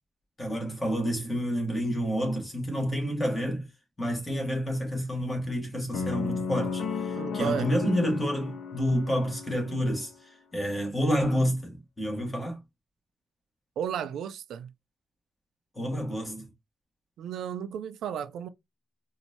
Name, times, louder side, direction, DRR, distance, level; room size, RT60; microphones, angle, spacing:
voice 1, 0.4-3.7 4.0-12.6 15.7-16.5, equal, 15° left, 1.7 m, -29 dB
sound 1, 5.9-10.1, left 5 dB, 85° left, 0.9 m, -34 dB
voice 2, 7.1-7.7 13.8-14.7 17.2-18.5, right 8 dB, 85° right, 0.4 m, -33 dB
4.4 x 2.7 x 2.8 m
wide cardioid pair, 160°, 0 cm